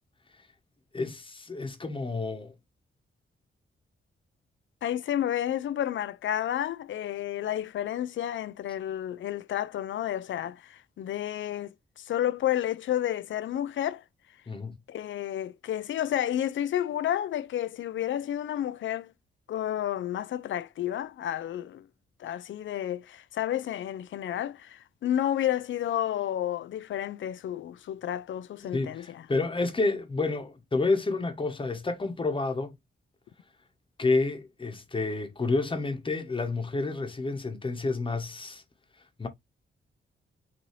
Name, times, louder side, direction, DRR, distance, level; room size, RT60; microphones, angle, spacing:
voice 1, 0.9-2.5 14.5-14.8 28.7-32.7 34.0-38.6 39.2-39.3, left 3 dB, 25° left, 0.9 m, -29 dB
voice 2, 4.8-14.0 14.9-19.1 19.5-21.9 22.2-29.3, left 11 dB, 70° left, 0.4 m, -31 dB
5.5 x 2.7 x 3.1 m
wide cardioid pair, 125°, 21 cm